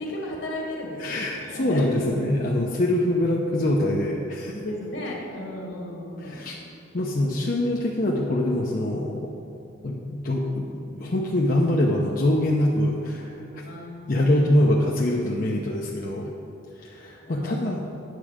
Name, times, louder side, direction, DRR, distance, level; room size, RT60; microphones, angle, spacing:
voice 1, 0.0-1.9 4.5-6.4 13.6-14.4 17.2-17.6, left 1 dB, 65° left, -1 dB, 1.9 m, -34 dB
voice 2, 1.0-4.5 6.2-6.5 6.9-9.3 9.8-13.4 14.1-16.3 16.8-17.8, left 1 dB, 45° left, -2 dB, 0.7 m, -24 dB
9.2 x 7.3 x 5.0 m, 2.8 s
head